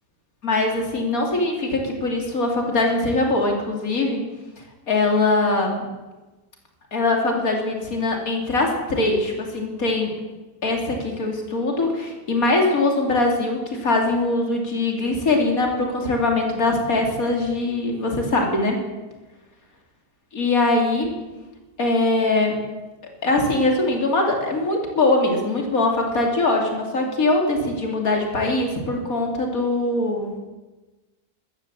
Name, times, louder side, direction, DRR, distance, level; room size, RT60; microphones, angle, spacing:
voice 1, 0.4-4.2 4.9-5.9 6.9-10.1 10.6-18.8 20.3-21.1 21.8-22.6 23.2-30.4, left 2 dB, 60° left, 2 dB, 3.1 m, -22 dB
15.0 x 12.5 x 7.4 m, 1.2 s
omnidirectional pair, 1.7 m